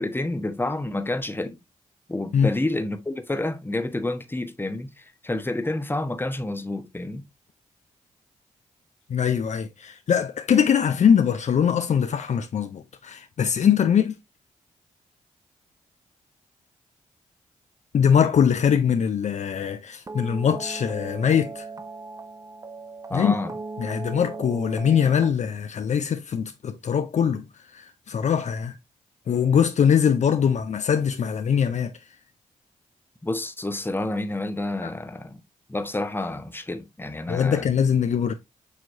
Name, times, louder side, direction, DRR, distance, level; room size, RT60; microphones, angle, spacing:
voice 1, 0.0-1.6 2.1-7.2 23.1-23.6 33.2-35.4 35.7-37.6, left 2 dB, 15° left, 1.0 m, -29 dB
voice 2, 9.1-14.1 17.9-21.7 23.1-23.4 23.8-27.5 27.7-28.7 29.3-31.9 34.8-34.9 37.3-38.3, left 7 dB, 55° left, 0.5 m, -22 dB
sound 1, 20.1-25.3, right 3 dB, 25° right, 0.4 m, -38 dB
6.5 x 2.9 x 2.6 m
supercardioid pair, 45°, 14 cm